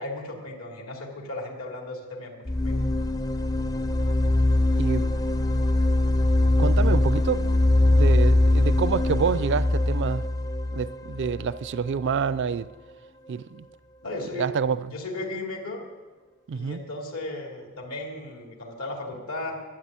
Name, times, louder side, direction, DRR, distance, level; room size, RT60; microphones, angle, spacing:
voice 1, 0.0-2.8 14.0-14.5 14.9-15.8 16.5-19.6, left 2 dB, 70° left, 2.8 m, -35 dB
sound 1, 2.5-12.3, left 1 dB, 15° left, 0.4 m, -22 dB
voice 2, 6.6-7.5 7.8-10.3 10.7-12.7 13.3-13.6 14.4-14.9 16.5-16.8, right 6 dB, 55° right, 0.4 m, -27 dB
12.5 x 9.7 x 8.8 m
head